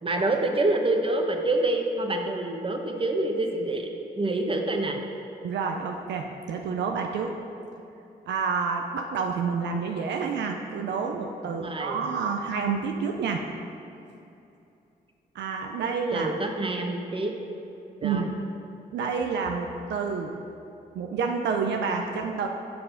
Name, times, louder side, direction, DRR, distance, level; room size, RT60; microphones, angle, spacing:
voice 1, 0.0-3.9 4.2-5.0 11.6-12.1 16.1-17.3 18.0-18.3, right 2 dB, 30° right, 3 dB, 1.1 m, -27 dB
voice 2, 5.4-7.4 8.3-13.4 15.3-16.3 18.0-18.3 18.9-20.4 20.9-22.5, right 5 dB, 80° right, 3 dB, 0.5 m, -29 dB
6.9 x 5.3 x 5.6 m, 2.7 s
supercardioid pair, 50°, 18 cm